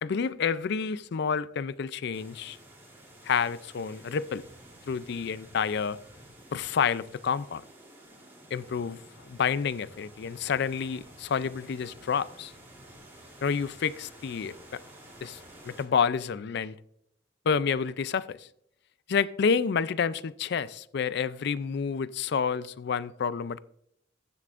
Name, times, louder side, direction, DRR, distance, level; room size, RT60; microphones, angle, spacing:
voice 1, 0.0-2.6 3.2-4.4 4.9-6.0 6.5-7.6 8.5-9.0 9.3-12.5 13.4-14.8 15.2-15.4 15.6-16.8 17.5-18.5 19.1-23.6, left 6 dB, 60° left, 0.4 m, -29 dB
sound 1, 2.1-15.9, right 1 dB, 15° right, 2.9 m, -51 dB
14.0 x 11.0 x 2.5 m
head